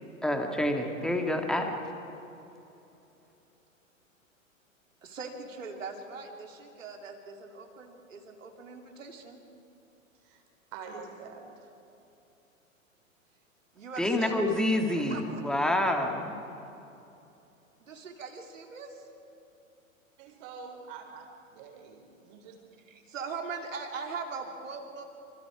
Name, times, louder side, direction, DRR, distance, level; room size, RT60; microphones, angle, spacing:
voice 1, 0.2-1.8 14.0-16.4, left 1 dB, ahead, 3 dB, 2.0 m, -27 dB
voice 2, 5.0-9.4 13.7-14.4 15.0-15.4 17.8-19.1 22.9-25.0, right 4 dB, 65° right, 3 dB, 3.1 m, -41 dB
voice 3, 10.7-11.7 20.2-22.6, right 5 dB, 40° right, 4 dB, 4.0 m, -46 dB
26.5 x 25.5 x 4.9 m, 2.8 s
figure-of-eight pair, 105°, 41 cm